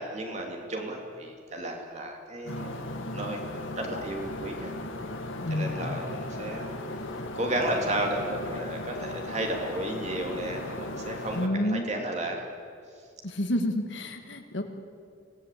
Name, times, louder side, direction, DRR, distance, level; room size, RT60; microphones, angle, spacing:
voice 1, 0.0-2.7 3.1-4.7 5.5-6.7 7.3-12.4, right 1 dB, 35° right, 1 dB, 3.1 m, -33 dB
sound 1, 2.5-11.5, left 1 dB, 90° left, 2.1 m, -37 dB
voice 2, 5.4-6.0 11.3-11.9 13.2-14.6, left 1 dB, 70° left, 5 dB, 2.1 m, -29 dB
25.5 x 18.0 x 8.6 m, 2.3 s
head